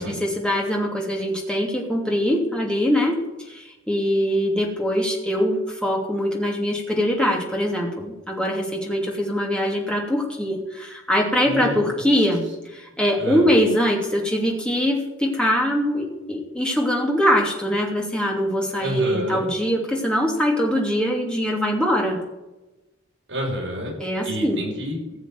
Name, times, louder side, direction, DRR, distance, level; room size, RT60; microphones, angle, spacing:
voice 1, 0.0-3.2 3.5-12.4 12.7-22.2 24.0-24.6, equal, 5° left, -1 dB, 2.7 m, -22 dB
voice 2, 11.4-12.0 13.2-13.5 18.8-19.4 23.3-23.9 24.2-25.2, equal, 55° right, -2 dB, 6.6 m, -29 dB
16.0 x 6.9 x 9.4 m, 1.1 s
head